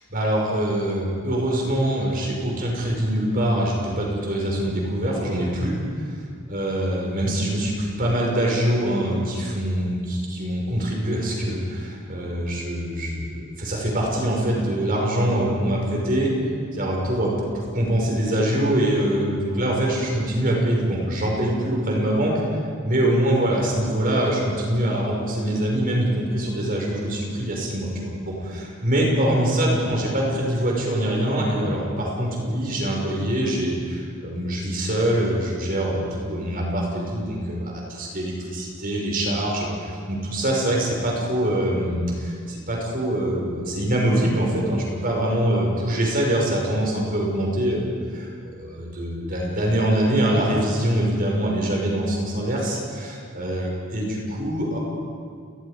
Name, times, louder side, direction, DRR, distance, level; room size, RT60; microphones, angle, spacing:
voice 1, 0.1-6.1 6.5-16.3 16.7-22.3 22.8-47.9 48.4-54.8, right 1 dB, 45° right, -2 dB, 5.7 m, -24 dB
29.5 x 20.0 x 5.2 m, 2.2 s
head